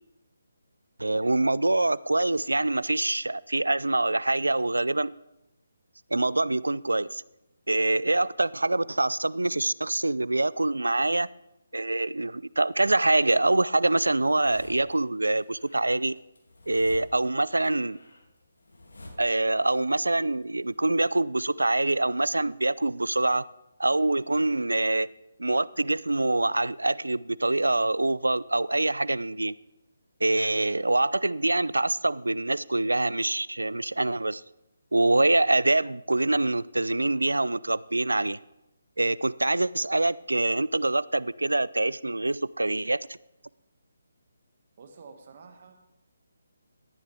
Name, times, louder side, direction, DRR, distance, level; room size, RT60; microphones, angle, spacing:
voice 1, 1.0-5.1 6.1-7.2 7.7-11.3 11.7-16.1 16.7-18.0 19.2-23.4 23.8-25.1 25.4-29.5 30.2-34.4 34.9-38.4 39.0-43.0, right 2 dB, 85° right, 0.3 m, -25 dB
sound 1, 14.1-15.0 15.4-19.8 20.0-21.0, left 1 dB, 75° left, 2.6 m, -50 dB
voice 2, 44.8-45.7, right 4 dB, 45° right, 1.7 m, -49 dB
13.5 x 11.0 x 3.4 m
figure-of-eight pair, 150°, 0 cm